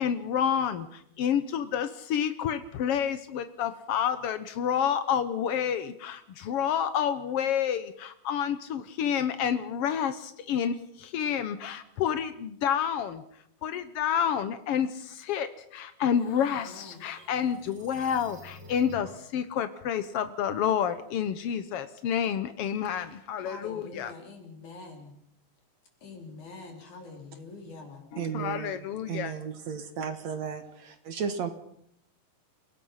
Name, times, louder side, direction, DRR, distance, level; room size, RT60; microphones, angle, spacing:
voice 1, 0.0-24.1 28.1-29.3, left 8 dB, 80° left, 11 dB, 1.3 m, -29 dB
sound 1, 15.8-19.3, left 1 dB, 35° right, 4.2 m, -50 dB
voice 2, 16.4-17.0 23.4-25.2 26.0-28.1 30.0-30.2, left 3 dB, 60° left, 3 dB, 5.3 m, -45 dB
voice 3, 28.2-31.5, right 7 dB, 60° right, 9 dB, 2.4 m, -34 dB
28.5 x 17.5 x 5.7 m, 0.69 s
omnidirectional pair, 3.9 m